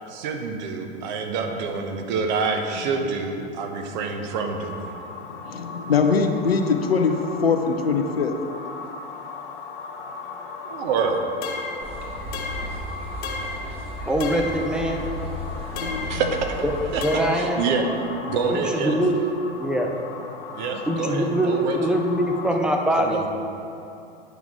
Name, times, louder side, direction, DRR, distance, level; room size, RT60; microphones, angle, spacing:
voice 1, 0.1-4.9 10.6-11.3 16.0-16.5 16.9-17.0 17.3-17.9 18.3-19.0 20.5-22.0 23.0-23.3, right 5 dB, 50° right, 4 dB, 0.9 m, -27 dB
sound 1, 4.4-22.5, left 4 dB, 55° left, 1.0 m, -38 dB
voice 2, 5.2-8.4 15.8-16.2 17.7-17.9 18.3-18.4, left 5 dB, 75° left, 5 dB, 0.7 m, -23 dB
sound 2, 11.4-11.9 12.3-12.8 13.2-13.7 14.2-14.6 15.8-16.2 17.0-17.4, left 3 dB, 30° left, 0.9 m, -33 dB
sound 3, 11.8-17.1, equal, 20° right, 1.3 m, -35 dB
voice 3, 14.0-15.1 17.0-17.7 18.5-19.2 19.5-19.9 20.9-23.3, right 1 dB, 5° right, 2 dB, 0.6 m, -23 dB
9.3 x 5.9 x 3.7 m, 2.7 s
figure-of-eight pair, 90°, 30 cm